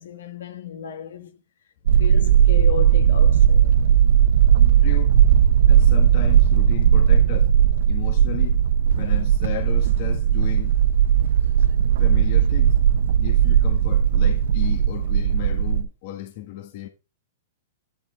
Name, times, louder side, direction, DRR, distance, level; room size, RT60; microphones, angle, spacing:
voice 1, 0.0-1.4 2.0-3.8, left 8 dB, 80° left, 2.0 m, -34 dB
sound 1, 1.9-15.8, right 9 dB, 75° right, 0.7 m, -17 dB
voice 2, 4.8-5.2 5.7-7.5 7.9-8.6 8.9-10.8 11.9-12.8 13.2-16.9, left 13 dB, 55° left, 1.5 m, -34 dB
10.5 x 5.5 x 4.0 m
hypercardioid pair, 130°, 0 cm